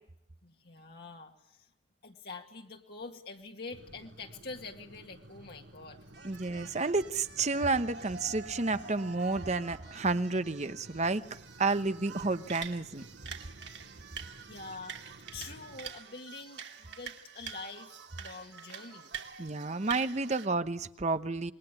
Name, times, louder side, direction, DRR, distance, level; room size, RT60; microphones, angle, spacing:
voice 1, 0.4-1.7 2.0-6.0 14.2-15.0 15.3-19.1, left 3 dB, 55° left, 2 dB, 2.0 m, -46 dB
sound 1, 3.7-15.9, right 1 dB, 90° right, 2.5 m, -55 dB
sound 2, 6.1-20.5, right 6 dB, 65° right, 2.6 m, -47 dB
voice 2, 6.2-11.2 11.6-13.0 19.4-21.5, right 3 dB, 40° right, 11 dB, 1.0 m, -30 dB
27.0 x 22.0 x 9.9 m, 0.80 s
head